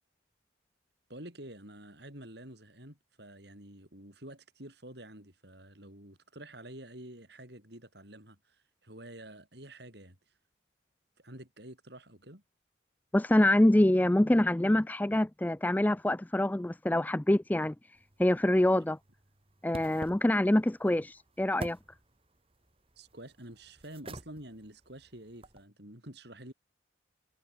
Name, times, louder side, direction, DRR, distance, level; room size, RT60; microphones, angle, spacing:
voice 1, 1.1-8.6 8.8-10.2 11.2-12.4 20.9-21.0 23.0-26.5, right 1 dB, 55° right, 7.7 m, -48 dB
voice 2, 13.1-17.7 18.2-19.0 19.6-21.8, left 1 dB, 10° left, 0.3 m, -25 dB
sound 1, 17.9-25.6, right 1 dB, 30° right, 3.2 m, -49 dB
head